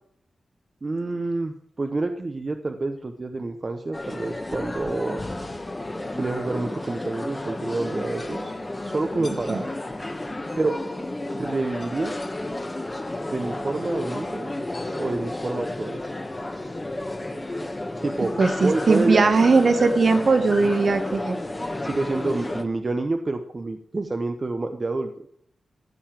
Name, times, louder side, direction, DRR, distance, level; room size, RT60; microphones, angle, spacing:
voice 1, 0.8-5.2 6.1-8.5 8.8-9.7 10.6-10.8 11.3-12.1 13.3-14.5 15.0-16.0 18.0-19.3 21.8-25.1, right 2 dB, 35° right, 6 dB, 0.9 m, -28 dB
sound 1, 3.9-22.6, left 1 dB, 20° left, 1.3 m, -32 dB
voice 2, 18.4-21.4, right 4 dB, 50° right, 8 dB, 1.4 m, -19 dB
15.0 x 5.6 x 9.0 m, 0.67 s
wide cardioid pair, 110°, 0 cm